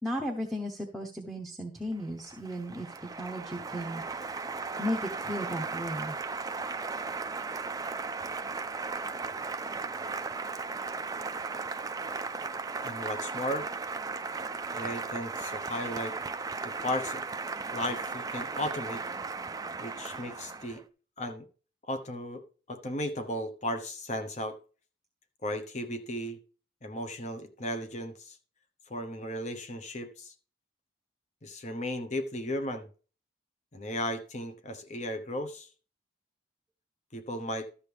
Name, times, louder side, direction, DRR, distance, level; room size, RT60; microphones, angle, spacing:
voice 1, 0.0-4.4 4.8-6.2, equal, ahead, 0.9 m, -35 dB
Applause, 1.9-20.8, right 4 dB, 20° right, 0.3 m, -36 dB
voice 2, 12.8-13.7 14.7-16.2 16.6-17.2 17.7-19.0 19.8-20.8 21.2-21.5 21.9-24.6 25.4-26.4 26.8-28.4 28.9-30.3 31.4-32.9 33.7-35.7 37.1-37.7, left 1 dB, 35° left, 0.9 m, -35 dB
13.0 x 6.9 x 3.4 m
head